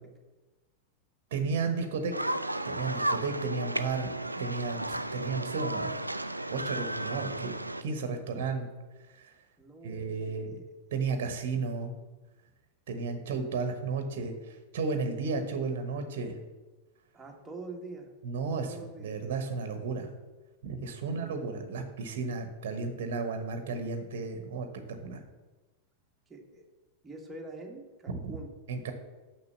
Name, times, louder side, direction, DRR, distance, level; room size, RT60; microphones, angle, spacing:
voice 1, 1.3-2.1 2.6-4.1 4.4-5.9 6.5-7.5 7.8-8.7 9.1-9.3 9.8-10.6 10.9-11.9 12.9-16.4 18.2-20.1 20.6-25.2 28.1-28.3 28.7-28.9, right 4 dB, 55° right, 7 dB, 1.1 m, -33 dB
sound 1, 2.1-7.8, right 1 dB, 85° right, 0.4 m, -34 dB
voice 2, 9.6-10.6 17.1-18.1 18.6-19.1 21.0-21.8 26.3-26.6 27.0-28.5, right 2 dB, 10° right, 0 dB, 1.6 m, -46 dB
6.7 x 6.1 x 7.2 m, 1.2 s
figure-of-eight pair, 90°, 0 cm